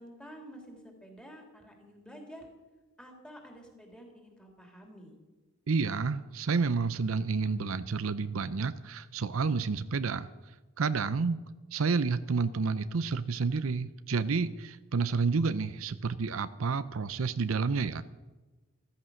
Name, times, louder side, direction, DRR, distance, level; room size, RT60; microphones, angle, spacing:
voice 1, 0.0-2.5 3.0-5.2, equal, 5° left, 2 dB, 3.0 m, -50 dB
voice 2, 5.7-10.3 10.8-11.4 11.7-18.0, right 4 dB, 70° right, 14 dB, 0.6 m, -30 dB
14.5 x 13.5 x 6.4 m, 1.2 s
head